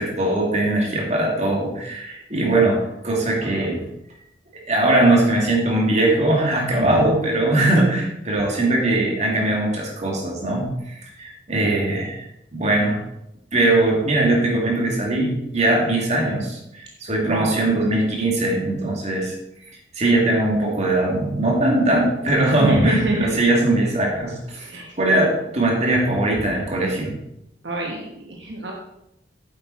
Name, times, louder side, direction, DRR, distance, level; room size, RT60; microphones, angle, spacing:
voice 1, 0.0-3.8 4.7-12.2 12.5-13.0 13.5-19.4 19.9-27.1, right 2 dB, 40° right, -2 dB, 2.6 m, -20 dB
voice 2, 17.2-17.7 22.6-23.3 24.6-25.0 27.6-28.7, right 2 dB, 70° right, 0 dB, 1.3 m, -26 dB
9.3 x 7.8 x 4.2 m, 0.84 s
head